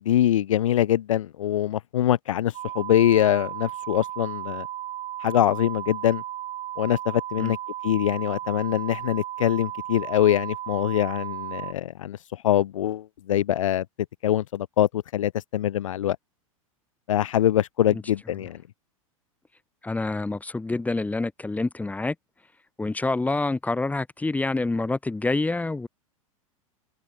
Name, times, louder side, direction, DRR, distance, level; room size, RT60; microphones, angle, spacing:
voice 1, 0.0-4.7 5.2-6.2 6.8-7.6 7.8-12.2 12.4-13.8 14.2-16.2 17.1-18.6, left 11 dB, 65° left, 1.6 m, -23 dB
sound 1, 2.5-11.7, right 12 dB, 35° right, 4.0 m, -35 dB
voice 2, 19.8-22.1 22.8-25.9, left 2 dB, 10° left, 2.7 m, -27 dB
open air
figure-of-eight pair, 90°, 18 cm